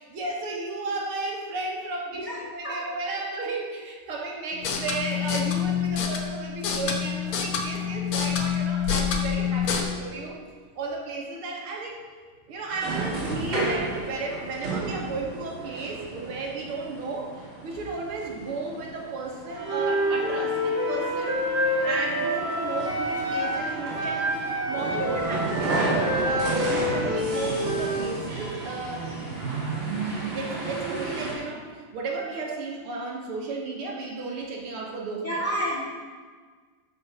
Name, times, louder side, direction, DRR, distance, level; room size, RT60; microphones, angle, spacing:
voice 1, 0.0-10.4 10.8-12.0 12.5-17.3 17.6-24.3 24.7-29.4 29.7-31.7 31.9-35.4, right 3 dB, 85° right, 0 dB, 2.3 m, -34 dB
voice 2, 2.6-3.0 35.2-35.8, equal, 20° left, -7 dB, 2.7 m, -30 dB
sound 1, 4.5-9.8, left 8 dB, 75° left, 1.9 m, -27 dB
sound 2, 12.7-31.3, right 3 dB, 60° right, 3.5 m, -32 dB
Wind instrument woodwind instrument, 19.6-23.7 23.9-28.1, equal, 5° right, 2.1 m, -27 dB
13.5 x 5.4 x 5.3 m, 1.5 s
omnidirectional pair, 2.4 m